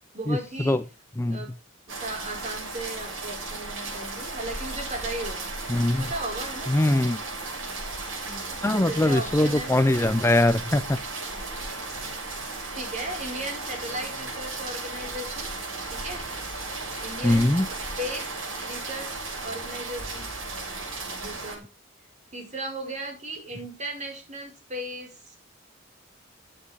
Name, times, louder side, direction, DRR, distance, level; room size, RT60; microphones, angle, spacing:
voice 1, 0.1-0.8 1.3-1.5 1.9-5.5 6.0-6.7 8.2-9.8 12.7-15.5 15.9-16.3 17.0-20.3 21.2-21.7 22.3-25.4, right 1 dB, 35° right, 3 dB, 5.2 m, -36 dB
sound 1, 1.9-21.6, right 3 dB, 85° right, 7.6 m, -35 dB
voice 2, 5.7-6.1 6.7-7.2 8.6-11.0 17.2-17.7, left 1 dB, 15° left, 12 dB, 0.5 m, -22 dB
14.5 x 9.6 x 3.6 m, 0.28 s
head